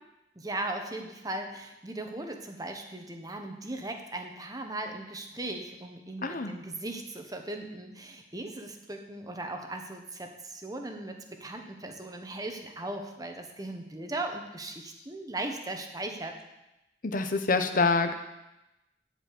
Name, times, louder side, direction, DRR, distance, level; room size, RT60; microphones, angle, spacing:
voice 1, 0.3-16.4, right 2 dB, 20° right, 4 dB, 1.2 m, -38 dB
voice 2, 6.2-6.6 17.0-18.2, left 4 dB, 50° left, 7 dB, 0.9 m, -26 dB
11.5 x 5.1 x 8.5 m, 0.94 s
head